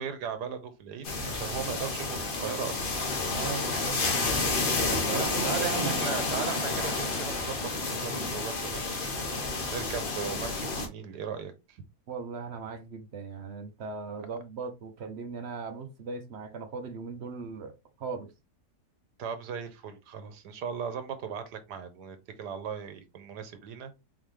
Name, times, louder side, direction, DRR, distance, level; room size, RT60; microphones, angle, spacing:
voice 1, 0.0-2.8 5.1-9.0 9.7-11.8 19.2-23.9, right 7 dB, 80° right, 1.5 m, -37 dB
sound 1, 1.0-10.9, left 3 dB, 40° left, 1.0 m, -30 dB
voice 2, 3.3-4.0 4.8-6.2 12.1-18.3, right 5 dB, 55° right, 0.7 m, -38 dB
4.1 x 3.9 x 3.1 m
omnidirectional pair, 1.8 m